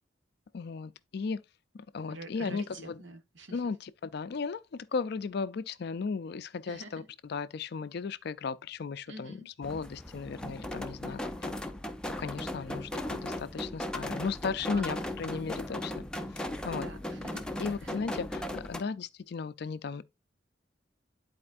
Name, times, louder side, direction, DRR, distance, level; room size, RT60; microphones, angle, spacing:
voice 1, 0.5-1.4 1.7-3.0 3.5-7.0 7.3-11.5 12.2-16.0 16.3-16.9 17.6-20.0, left 5 dB, 55° left, 0.4 m, -36 dB
voice 2, 2.1-3.6 6.7-7.1 9.1-9.5 14.7-15.5 16.6-17.4 17.8-18.0, right 2 dB, 65° right, 1.3 m, -46 dB
sound 1, 9.6-18.8, left 1 dB, 5° left, 0.5 m, -37 dB
11.0 x 4.3 x 2.5 m
head